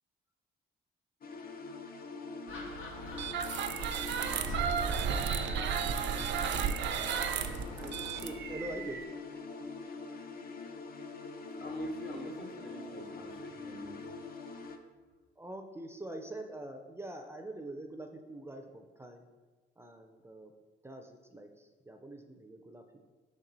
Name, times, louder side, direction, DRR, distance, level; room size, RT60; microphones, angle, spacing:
sound 1, 1.2-14.8, left 3 dB, 50° left, 0.6 m, -44 dB
Gull seagull, 2.5-8.3, equal, 85° left, 1.0 m, -45 dB
sound 2, 3.1-9.0, right 7 dB, 65° right, 0.5 m, -33 dB
voice 1, 7.7-9.1 15.4-19.3 19.8-20.5 20.8-23.1, right 1 dB, 15° right, 5 dB, 0.5 m, -45 dB
voice 2, 11.6-14.0, equal, 65° left, 0 dB, 1.3 m, -43 dB
5.9 x 4.3 x 4.0 m, 1.3 s
cardioid pair, 90°, 20 cm